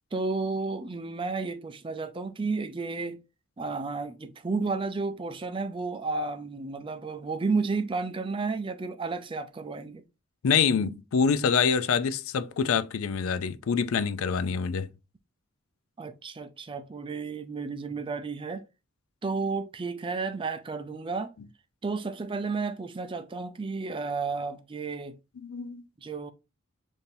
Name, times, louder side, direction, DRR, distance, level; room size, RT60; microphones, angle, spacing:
voice 1, 0.1-3.2 3.6-10.0 16.0-18.6 19.2-21.3 21.8-25.2 26.0-26.3, right 4 dB, 25° right, 0.4 m, -32 dB
voice 2, 10.4-14.9 25.4-25.8, left 6 dB, 80° left, 0.4 m, -26 dB
7.0 x 2.7 x 2.6 m
head